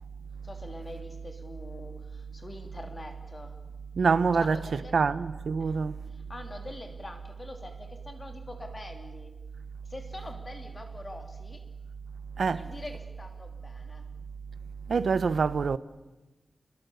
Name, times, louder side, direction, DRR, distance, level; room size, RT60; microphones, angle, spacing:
voice 1, 0.4-3.5 4.3-5.0 5.6-5.8 6.1-9.3 9.8-11.7 12.5-14.0, left 2 dB, 25° left, 2.7 m, -44 dB
voice 2, 4.0-4.6 4.9-5.9 12.4-12.6 14.9-15.8, right 5 dB, 70° right, 1.0 m, -25 dB
29.5 x 22.0 x 7.0 m
wide cardioid pair, 150°, 0 cm